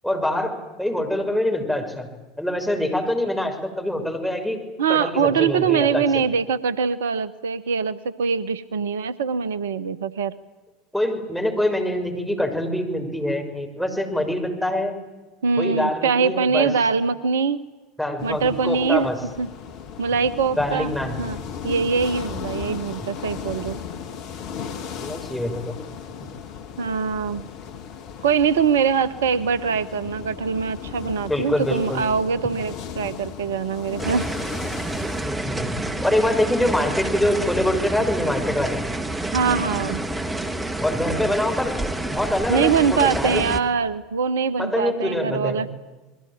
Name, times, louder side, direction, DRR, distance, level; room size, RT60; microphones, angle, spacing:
voice 1, 0.0-2.1 2.4-4.6 4.9-6.2 10.9-15.0 15.6-16.7 18.0-19.2 20.6-21.2 25.0-25.8 31.3-32.0 35.2-38.8 40.8-41.8 42.1-43.4 44.6-45.6, left 1 dB, ahead, 2 dB, 6.2 m, -24 dB
voice 2, 4.8-10.3 15.4-17.6 18.2-19.1 19.4-19.5 20.0-20.9 21.2-21.4 21.6-23.8 26.8-27.4 28.2-34.3 39.3-40.0 42.5-45.7, right 6 dB, 70° right, 16 dB, 0.8 m, -23 dB
sound 1, 18.2-37.8, left 7 dB, 50° left, 1.8 m, -36 dB
sound 2, 34.0-43.6, right 2 dB, 15° right, 2.5 m, -28 dB
29.5 x 21.5 x 9.1 m, 1.2 s
figure-of-eight pair, 75°, 0 cm